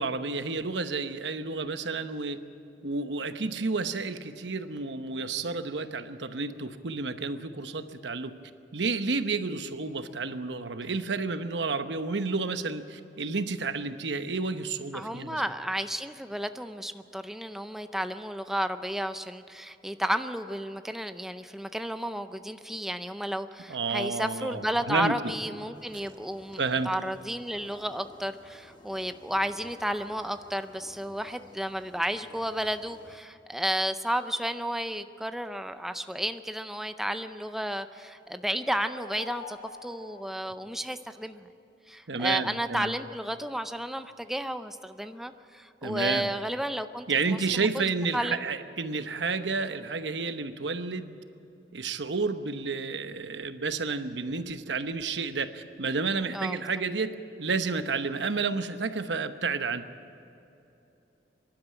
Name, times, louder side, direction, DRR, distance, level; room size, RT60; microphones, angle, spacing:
voice 1, 0.0-2.4 2.8-8.3 8.7-15.4 23.7-25.2 26.6-26.9 42.1-42.9 45.8-46.3 47.1-51.2 51.7-57.1 57.4-59.8, right 4 dB, 90° right, 9 dB, 1.0 m, -31 dB
voice 2, 14.9-26.6 26.8-41.5 41.9-47.8 48.1-48.4 56.3-56.6, equal, ahead, 9 dB, 0.5 m, -32 dB
sound 1, 25.7-33.2, left 1 dB, 25° left, 1.2 m, -55 dB
sound 2, 38.3-41.2, left 3 dB, 50° left, 1.1 m, -47 dB
24.5 x 11.5 x 9.0 m, 2.9 s
head